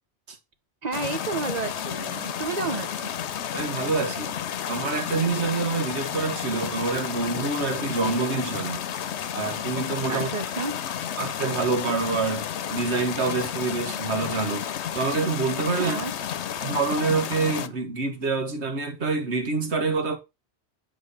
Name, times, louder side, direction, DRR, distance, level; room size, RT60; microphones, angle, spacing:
voice 1, 0.8-3.1 10.1-10.7 15.8-16.1, right 4 dB, 40° right, 1.0 m, -31 dB
sound 1, 0.9-17.7, left 9 dB, 85° left, 1.0 m, -32 dB
voice 2, 3.5-4.4 4.7-8.9 9.3-10.3 11.2-16.0 16.6-20.2, right 4 dB, 80° right, 1.7 m, -27 dB
7.8 x 3.8 x 6.7 m
omnidirectional pair, 1.1 m